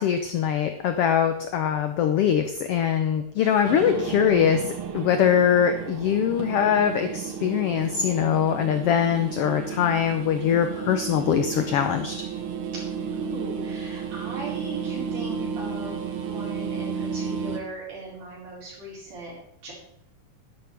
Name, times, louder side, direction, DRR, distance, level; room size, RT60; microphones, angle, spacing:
voice 1, 0.0-4.6 4.9-12.1, left 8 dB, 85° left, 7 dB, 1.3 m, -22 dB
sound 1, 3.6-17.6, right 6 dB, 60° right, 1.5 m, -33 dB
voice 2, 13.2-19.4 19.6-19.7, right 3 dB, 80° right, -6 dB, 6.1 m, -39 dB
11.5 x 11.5 x 3.4 m, 0.73 s
omnidirectional pair, 3.6 m